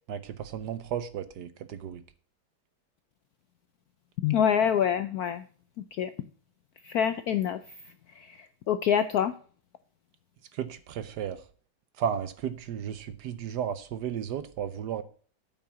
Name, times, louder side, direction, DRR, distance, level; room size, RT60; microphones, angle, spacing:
voice 1, 0.0-2.0 10.5-11.4 12.0-15.0, right 8 dB, 70° right, 13 dB, 1.1 m, -34 dB
voice 2, 4.2-5.4 6.0-6.1 6.9-7.6 8.7-9.3, left 8 dB, 75° left, 12 dB, 0.8 m, -25 dB
8.6 x 5.7 x 6.9 m, 0.43 s
omnidirectional pair, 2.2 m